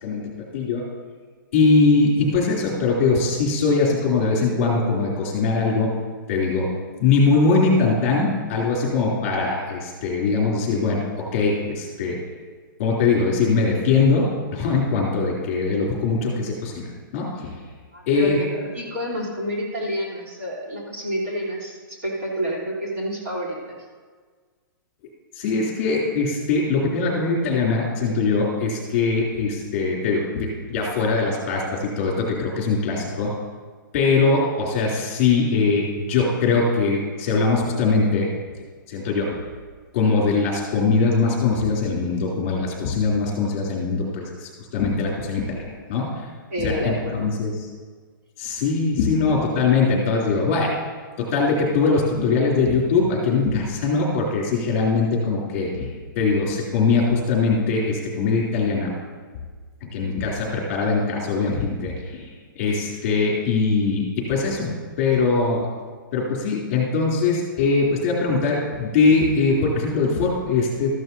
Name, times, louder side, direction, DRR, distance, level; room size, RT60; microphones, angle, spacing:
voice 1, 0.0-0.8 1.5-5.9 6.3-6.7 7.0-12.2 12.8-16.9 17.1-17.6 18.1-18.4 25.3-33.3 33.9-38.3 38.9-39.4 39.9-46.3 46.6-47.7 48.4-50.7 51.2-55.9 56.1-58.9 59.9-62.3 62.5-65.6 66.1-70.9, left 4 dB, 25° left, -3 dB, 3.0 m, -21 dB
voice 2, 17.9-23.8 46.5-47.3, equal, 45° right, -5 dB, 3.5 m, -28 dB
13.5 x 12.0 x 2.8 m, 1.5 s
hypercardioid pair, 180°, 12 cm